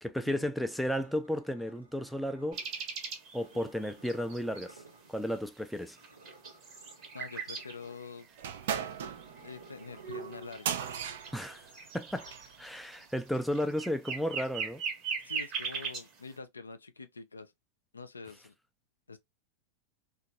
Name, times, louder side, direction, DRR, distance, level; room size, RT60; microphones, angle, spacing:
voice 1, 0.0-2.6 3.3-4.8 5.1-6.0 11.3-11.7 11.9-12.3 12.6-14.8, equal, ahead, 0.4 m, -33 dB
sound 1, 0.6-2.8 3.4-5.4 5.7-10.2, right 3 dB, 85° right, 0.7 m, -57 dB
sound 2, 2.5-4.7 5.4-5.5 5.8-7.7 8.1-16.0, right 5 dB, 35° right, 1.1 m, -39 dB
voice 2, 7.1-8.3 9.4-10.9 15.2-17.5 17.9-18.5 19.1-19.2, left 4 dB, 75° left, 0.4 m, -45 dB
sound 3, 8.4-12.5, right 8 dB, 55° right, 0.4 m, -38 dB
2.9 x 2.4 x 2.6 m
figure-of-eight pair, 90°, 0 cm